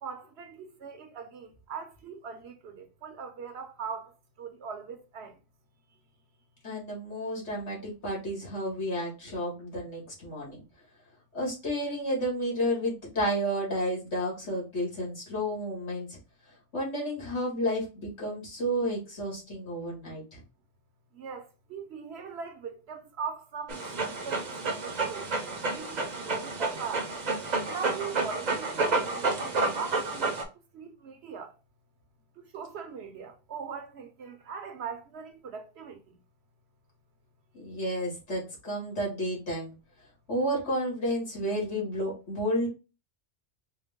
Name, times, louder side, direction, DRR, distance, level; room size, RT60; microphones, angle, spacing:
voice 1, 0.0-5.4 21.1-23.8 24.1-27.1 27.6-30.3 30.7-31.5 32.4-36.0, right 6 dB, 70° right, 1.0 m, -40 dB
voice 2, 6.6-10.6 11.3-16.2 16.7-20.4 37.5-39.7 40.3-42.7, equal, 75° left, 2.2 m, -31 dB
Dog, 23.7-30.4, right 3 dB, 45° right, 0.8 m, -30 dB
4.4 x 2.2 x 3.5 m
omnidirectional pair, 1.1 m